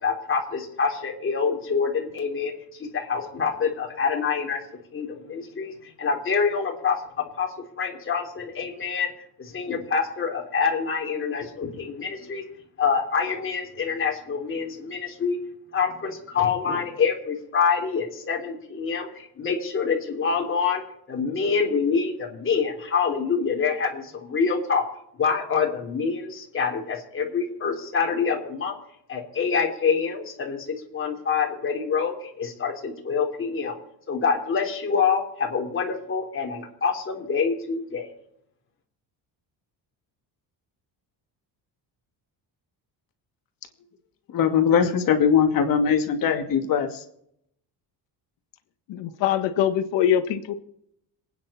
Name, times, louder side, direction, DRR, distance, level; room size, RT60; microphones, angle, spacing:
voice 1, 0.0-4.6 4.9-7.0 7.4-7.5 7.8-9.1 9.4-12.4 12.8-15.4 15.7-20.8 21.1-24.8 25.2-28.7 29.1-33.8 34.1-38.1, left 5 dB, 30° left, 0 dB, 3.3 m, -26 dB
voice 2, 44.3-47.0, left 7 dB, 50° left, 5 dB, 2.4 m, -21 dB
voice 3, 48.9-50.5, left 10 dB, 80° left, 9 dB, 1.7 m, -23 dB
27.0 x 9.6 x 4.3 m, 0.73 s
cardioid pair, 170°, 42 cm